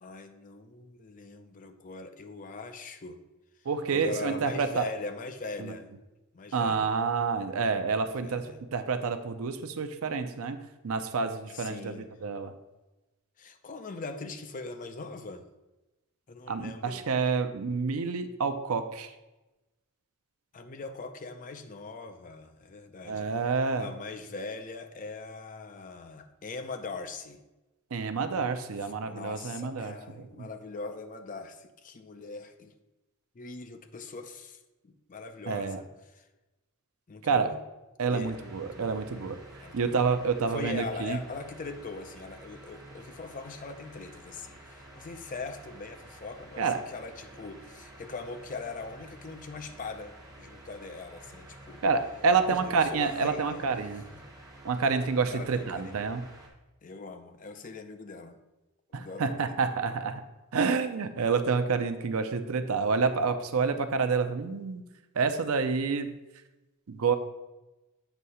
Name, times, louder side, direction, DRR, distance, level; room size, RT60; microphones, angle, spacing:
voice 1, 0.0-3.2 3.6-5.9 6.3-6.9 8.2-8.6 11.5-12.1 13.4-15.5 16.3-17.0 20.5-23.3 23.8-27.4 28.8-32.7 33.3-36.3 37.1-37.6 38.1-38.3 38.6-39.0 39.6-40.0 40.5-51.8 52.5-53.7 54.1-54.2 55.3-56.0 56.8-58.4 58.9-59.6, left 3 dB, 35° left, 8 dB, 0.5 m, -41 dB
voice 2, 3.7-4.8 5.6-5.8 6.5-8.4 8.7-11.9 12.2-12.5 16.5-19.1 23.0-23.9 27.9-29.9 30.4-30.5 35.5-35.8 37.2-37.5 38.0-39.4 39.7-41.2 46.6-46.8 51.8-54.0 54.6-56.2 58.9-60.2 60.5-64.8 65.2-66.1 66.9-67.1, right 5 dB, 70° right, 9 dB, 0.5 m, -28 dB
sound 1, 38.2-56.5, right 1 dB, 15° right, 1.1 m, -50 dB
8.0 x 2.8 x 5.5 m, 1.0 s
head